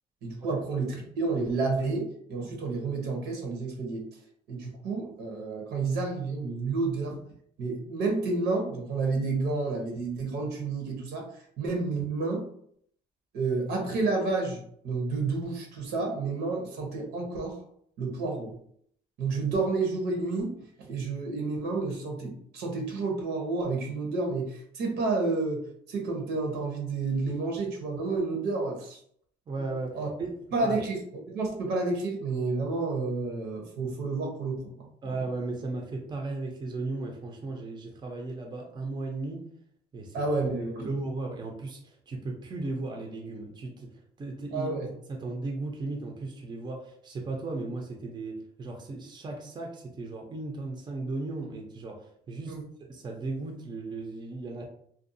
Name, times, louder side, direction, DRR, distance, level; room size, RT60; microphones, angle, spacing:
voice 1, 0.2-4.0 4.5-7.2 7.6-12.5 13.3-17.6 18.0-18.6 19.2-29.0 29.9-30.1 30.5-35.2 40.1-40.9 44.5-44.9 52.5-52.6, right 3 dB, 75° right, 1 dB, 0.9 m, -30 dB
voice 2, 29.5-30.3 30.6-30.8 35.0-39.4 39.9-40.2 40.8-44.7 45.1-52.0 52.3-52.5 52.9-54.7, right 3 dB, 25° right, 1 dB, 0.5 m, -36 dB
2.6 x 2.3 x 2.6 m, 0.65 s
cardioid pair, 110°, 17 cm